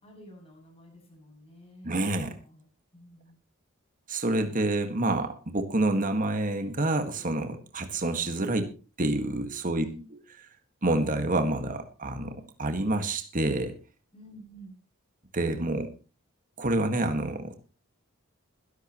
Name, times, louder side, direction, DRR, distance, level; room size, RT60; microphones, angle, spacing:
voice 1, 0.0-2.0 2.4-2.7 2.9-3.4 9.7-10.0 14.1-14.8, equal, 30° left, 1 dB, 7.4 m, -49 dB
voice 2, 1.8-2.4 4.1-8.7 9.0-9.8 10.8-13.8 15.3-15.9 16.6-17.5, right 2 dB, 40° right, 7 dB, 1.7 m, -28 dB
21.5 x 11.5 x 3.0 m, 0.33 s
head